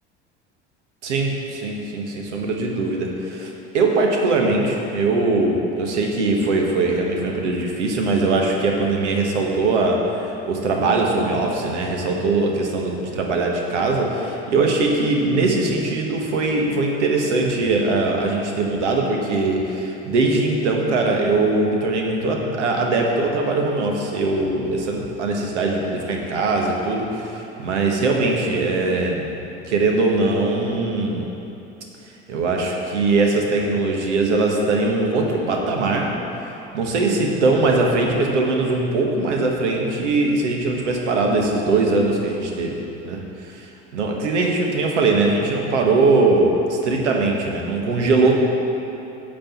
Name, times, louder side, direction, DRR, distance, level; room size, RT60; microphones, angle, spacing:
voice 1, 1.0-3.5 3.7-29.2 29.7-31.3 32.3-36.1 36.7-42.8 43.0-43.2 43.5-43.6 43.9-48.4, right 3 dB, 80° right, 1 dB, 1.5 m, -21 dB
10.0 x 5.2 x 7.4 m, 3.0 s
hypercardioid pair, 75°, 35 cm